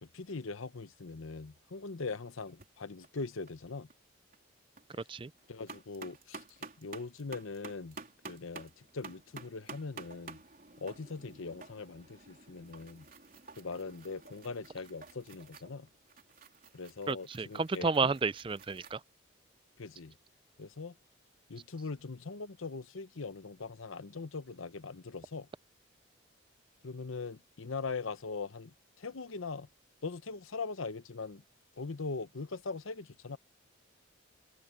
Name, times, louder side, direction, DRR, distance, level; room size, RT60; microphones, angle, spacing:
voice 1, 0.0-3.9 5.0-5.1 5.5-6.4 6.8-8.0 8.2-10.4 10.8-13.1 13.6-15.9 16.7-18.1 19.8-20.2 20.6-20.9 21.5-25.5 26.8-29.7 30.0-31.4 31.8-33.4, left 4 dB, 80° left, 0.8 m, -41 dB
sound 1, 2.5-2.7 3.0-3.6 3.9-4.0 4.3-4.9 5.2-19.0, right 3 dB, 45° right, 3.9 m, -51 dB
voice 2, 17.1-19.0, right 4 dB, 25° right, 0.4 m, -31 dB
head